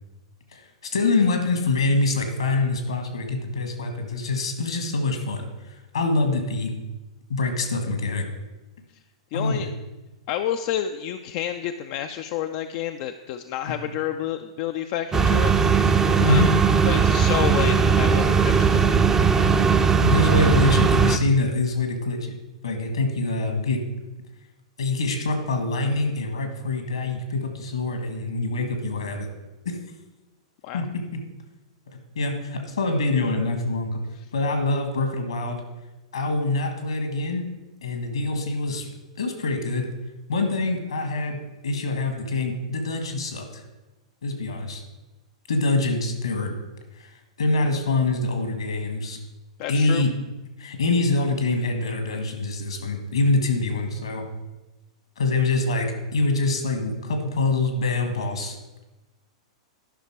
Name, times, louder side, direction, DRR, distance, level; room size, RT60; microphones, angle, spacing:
voice 1, 0.5-6.7 7.3-8.3 9.3-9.7 15.6-15.7 16.2-16.5 20.0-22.2 22.6-23.8 24.8-29.3 29.6-29.8 30.7-31.2 32.1-34.0 34.3-35.6 36.1-37.5 37.8-38.9 39.1-39.9 40.3-41.4 41.6-43.6 44.2-44.8 45.5-46.5 47.0-47.1 47.4-49.2 49.7-50.1 50.6-54.2 55.2-58.6, left 3 dB, 70° left, 6 dB, 1.6 m, -25 dB
voice 2, 9.3-9.7 10.3-15.5 16.3-16.5 16.8-19.0 19.4-19.5 30.6-30.8 49.6-50.0, left 10 dB, 45° left, 7 dB, 0.4 m, -29 dB
sound 1, 15.1-21.2, right 5 dB, 15° right, 0.6 m, -19 dB
11.5 x 5.8 x 4.7 m, 1.1 s
figure-of-eight pair, 100°, 3 cm